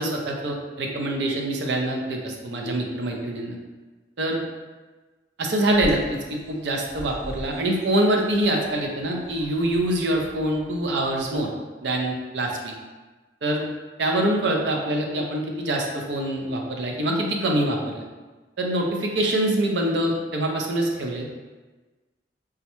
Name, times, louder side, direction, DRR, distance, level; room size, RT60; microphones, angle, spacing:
voice 1, 0.0-3.5 4.2-4.4 5.4-11.5 11.8-12.7 13.4-13.6 14.0-18.0 18.6-21.3, right 1 dB, 75° right, 1 dB, 0.5 m, -25 dB
Bird vocalization bird call bird song, 5.7-11.4, equal, 15° left, 0.5 m, -41 dB
3.5 x 2.1 x 2.9 m, 1.3 s
head